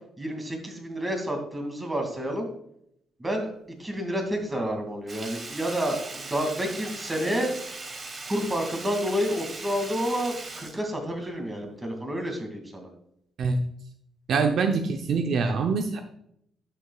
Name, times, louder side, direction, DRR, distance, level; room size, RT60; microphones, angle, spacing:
voice 1, 0.2-2.5 3.2-3.5 3.8-7.5 8.3-12.9, equal, 15° right, 3 dB, 2.4 m, -29 dB
Sink (filling or washing), 5.1-11.6 11.9-12.0, right 3 dB, 35° right, 1.5 m, -39 dB
voice 2, 14.3-16.0, right 5 dB, 65° right, 5 dB, 0.7 m, -24 dB
11.5 x 6.8 x 2.4 m, 0.72 s
cardioid pair, 90°, 0 cm